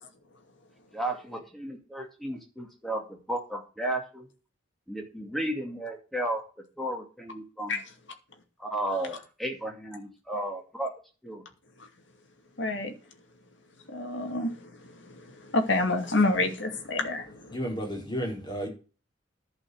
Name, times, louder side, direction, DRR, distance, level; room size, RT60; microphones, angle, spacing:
voice 1, 0.9-4.3 4.9-6.4 6.8-7.8 8.6-10.9 11.2-11.4, right 1 dB, ahead, 2.4 m, -33 dB
voice 2, 12.6-12.9 13.9-14.5 15.5-17.4, left 2 dB, 65° left, 2.5 m, -27 dB
voice 3, 17.5-18.7, equal, 25° left, 4.8 m, -32 dB
11.0 x 5.6 x 7.9 m
head